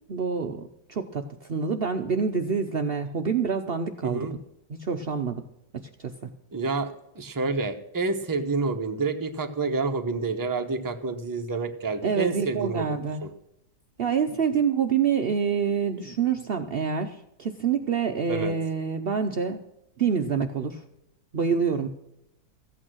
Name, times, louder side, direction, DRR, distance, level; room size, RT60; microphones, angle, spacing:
voice 1, 0.1-4.3 4.7-5.4 5.7-6.3 12.0-13.2 14.0-19.6 20.0-20.8 21.3-21.9, right 6 dB, 75° right, 6 dB, 0.5 m, -27 dB
voice 2, 4.0-4.3 6.5-12.9 18.3-18.6, right 3 dB, 20° right, 5 dB, 0.6 m, -28 dB
14.5 x 8.7 x 6.2 m, 0.85 s
omnidirectional pair, 2.0 m